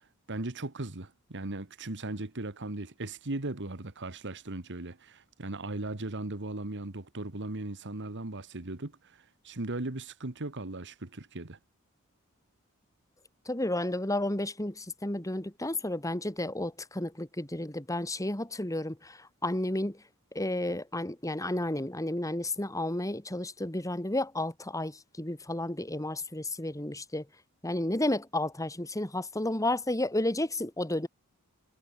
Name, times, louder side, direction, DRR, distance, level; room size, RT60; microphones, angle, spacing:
voice 1, 0.3-11.6, right 2 dB, 55° right, 1.7 m, -38 dB
voice 2, 13.5-20.0 20.3-27.3 27.6-31.1, left 1 dB, 15° left, 2.6 m, -32 dB
head